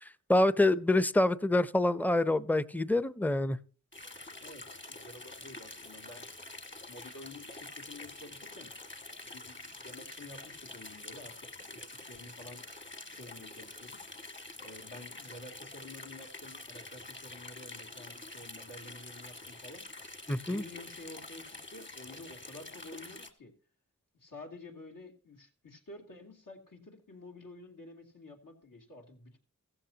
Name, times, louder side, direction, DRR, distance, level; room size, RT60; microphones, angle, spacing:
voice 1, 0.0-3.6 20.3-20.6, left 1 dB, 5° left, 15 dB, 0.6 m, -26 dB
sound 1, 3.9-23.3, left 2 dB, 35° left, 1.7 m, -47 dB
voice 2, 4.4-6.3 6.9-8.7 9.2-12.7 13.1-14.0 14.6-19.9 20.4-23.5 24.1-29.4, left 2 dB, 80° left, 1 dB, 2.9 m, -50 dB
16.0 x 14.5 x 2.9 m, 0.37 s
wide cardioid pair, 65°, 32 cm